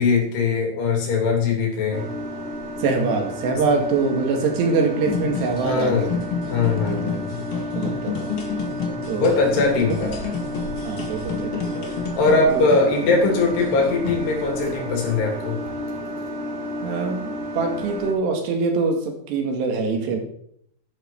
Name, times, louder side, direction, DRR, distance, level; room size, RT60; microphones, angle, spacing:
voice 1, 0.0-2.1 3.5-3.6 5.6-6.2 6.5-7.4 9.1-10.1 12.2-15.6, left 4 dB, 75° left, 0 dB, 5.0 m, -21 dB
sound 1, 1.9-18.1, left 1 dB, 50° right, 3.9 m, -32 dB
voice 2, 2.8-6.1 6.8-7.0 7.8-8.3 9.1-9.4 9.9-10.0 10.8-11.9 12.5-12.7 16.8-20.2, right 4 dB, 85° right, 3 dB, 4.1 m, -24 dB
sound 2, 5.0-15.1, left 5 dB, 45° left, 1.9 m, -31 dB
11.5 x 11.0 x 4.6 m, 0.68 s
omnidirectional pair, 4.8 m